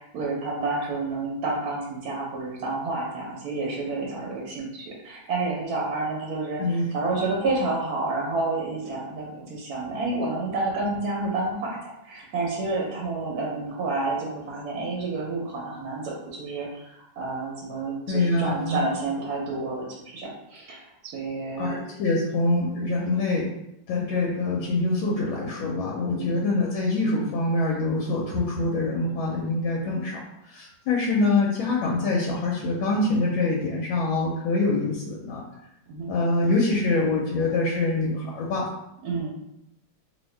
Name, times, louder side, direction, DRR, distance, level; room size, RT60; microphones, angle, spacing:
voice 1, 0.0-11.8 12.0-16.7 17.2-20.8 21.0-21.8 26.1-26.3 35.9-36.1 39.0-39.3, right 3 dB, 70° right, -2 dB, 0.9 m, -29 dB
voice 2, 18.1-18.8 21.6-23.4 23.9-30.2 30.5-35.4 36.1-38.6, left 2 dB, 90° left, -2 dB, 1.4 m, -25 dB
2.8 x 2.7 x 3.2 m, 0.83 s
omnidirectional pair, 2.1 m